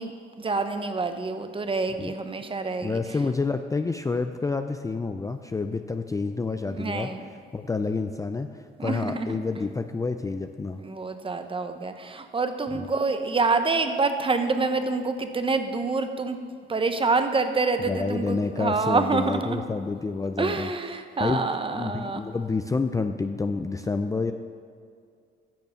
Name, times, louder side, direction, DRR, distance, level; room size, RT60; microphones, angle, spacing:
voice 1, 0.0-3.0 6.7-7.3 8.8-9.4 10.8-16.4 16.7-19.6 20.4-22.2, right 3 dB, 25° right, 8 dB, 0.9 m, -27 dB
voice 2, 2.8-7.1 7.5-10.8 12.7-12.9 17.9-20.7 21.2-24.3, left 4 dB, 15° left, 8 dB, 0.4 m, -28 dB
10.5 x 6.6 x 7.1 m, 2.2 s
cardioid pair, 90°, 20 cm